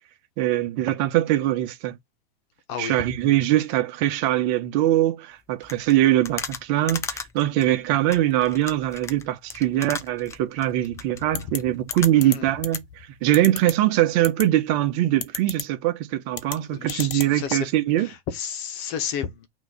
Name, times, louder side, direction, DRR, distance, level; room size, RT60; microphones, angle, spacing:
voice 1, 0.4-2.0 2.8-18.1, right 14 dB, 45° right, 1.2 m, -22 dB
sound 1, 5.6-12.4 12.7-12.8, left 6 dB, 10° left, 0.3 m, -37 dB
sound 2, 11.3-11.6 11.9-12.4 12.6-12.8 13.3-13.7 14.2-14.4 15.2-15.6 16.3-16.6 16.9-17.3, left 10 dB, 75° left, 1.1 m, -29 dB
voice 2, 12.1-12.5 16.7-17.6 18.0-19.5, left 8 dB, 45° left, 1.4 m, -32 dB
6.1 x 3.1 x 5.1 m
hypercardioid pair, 130°, 31 cm